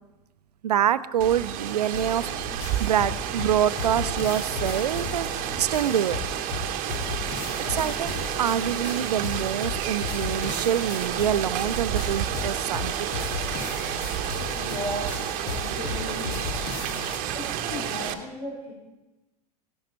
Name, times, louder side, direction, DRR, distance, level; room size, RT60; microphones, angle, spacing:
voice 1, 0.6-2.2 2.6-5.3 5.6-6.2 7.7-13.2, right 10 dB, 70° right, 16 dB, 0.6 m, -26 dB
Rain, 1.2-18.2, right 10 dB, 40° right, 1.1 m, -31 dB
sound 1, 1.9-17.2, left 4 dB, 45° left, 1.6 m, -35 dB
voice 2, 14.4-15.2 15.5-16.3 17.3-18.7, equal, 70° left, -4 dB, 4.5 m, -35 dB
17.0 x 11.5 x 4.3 m, 1.1 s
figure-of-eight pair, 90°, 21 cm